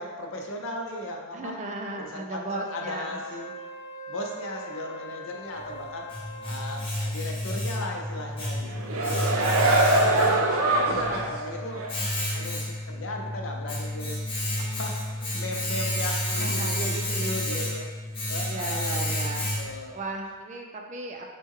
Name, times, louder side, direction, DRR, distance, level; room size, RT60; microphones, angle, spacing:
voice 1, 0.0-1.6 2.0-3.5 4.1-6.1 6.4-10.4 10.8-14.2 14.6-17.9 18.3-19.3 19.5-20.0, left 1 dB, 65° left, 1 dB, 0.6 m, -37 dB
voice 2, 1.3-3.2 16.4-17.6 18.5-19.5 19.9-21.3, right 2 dB, 35° right, 2 dB, 0.4 m, -36 dB
Wind instrument woodwind instrument, 2.5-6.8, equal, 45° left, 1.3 m, -41 dB
Domestic sounds home sounds, 5.6-19.9, left 1 dB, 25° left, 0.9 m, -31 dB
sound 1, 8.6-11.4 11.8-11.9, right 2 dB, 80° right, 0.6 m, -23 dB
6.3 x 2.2 x 3.6 m, 1.5 s
head